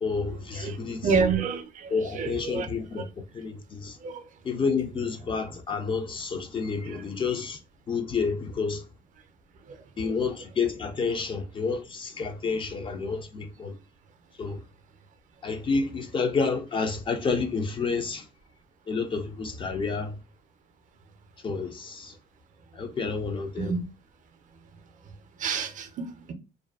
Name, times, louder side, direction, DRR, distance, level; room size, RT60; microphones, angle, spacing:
voice 1, 0.0-1.1 1.9-3.1 3.3-4.0 4.4-7.6 7.9-8.8 10.0-13.7 14.4-14.6 15.4-18.2 18.9-20.2 21.4-22.1 22.8-23.7, left 4 dB, 30° left, 0.4 m, -29 dB
voice 2, 1.0-2.7 4.0-4.2 6.9-7.0 23.6-23.8 25.4-26.3, right 5 dB, 50° right, 0.5 m, -28 dB
2.5 x 2.2 x 2.3 m
cardioid pair, 110°, 17 cm